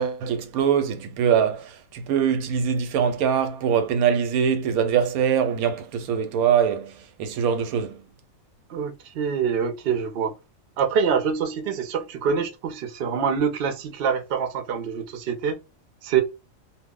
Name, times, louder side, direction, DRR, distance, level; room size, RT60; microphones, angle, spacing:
voice 1, 0.0-8.0, right 7 dB, 90° right, 1.0 m, -23 dB
voice 2, 8.7-10.3 10.8-15.6 16.0-16.2, right 6 dB, 55° right, 0.7 m, -25 dB
2.3 x 2.1 x 3.6 m
omnidirectional pair, 1.5 m